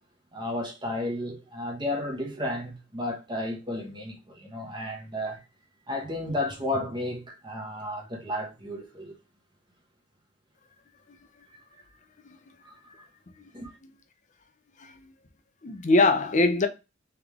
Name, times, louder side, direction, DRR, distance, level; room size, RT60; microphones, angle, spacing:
voice 1, 0.3-5.4 5.9-9.1 11.5-11.8 12.6-13.1 13.5-13.8, left 1 dB, 25° right, 1.1 m, -33 dB
voice 2, 13.6-13.9 14.8-15.1 15.6-16.7, left 2 dB, 40° left, 0.6 m, -23 dB
3.6 x 3.2 x 3.5 m
head